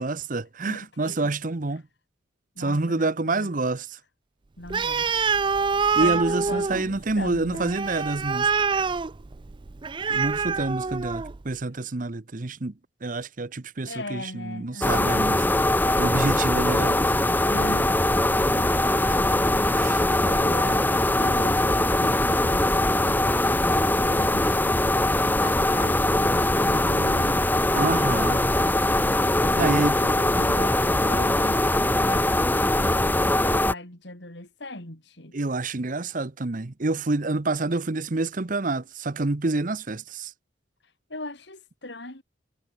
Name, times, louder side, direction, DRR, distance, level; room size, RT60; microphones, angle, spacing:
voice 1, 0.0-1.8 2.6-4.0 6.0-8.5 10.1-12.7 13.0-15.4 16.0-17.0 19.7-20.8 27.7-28.4 29.6-30.0 35.3-40.3, right 2 dB, 45° right, 0.8 m, -28 dB
voice 2, 0.7-1.3 2.5-3.5 4.6-5.1 5.9-7.7 13.8-15.3 17.5-18.0 20.4-24.7 25.4-27.5 29.2-35.3 41.1-42.2, left 1 dB, 60° left, 4.8 m, -39 dB
Animal, 4.7-11.4, right 5 dB, 25° right, 0.4 m, -26 dB
sound 1, 14.8-33.7, left 1 dB, 10° left, 1.2 m, -22 dB
head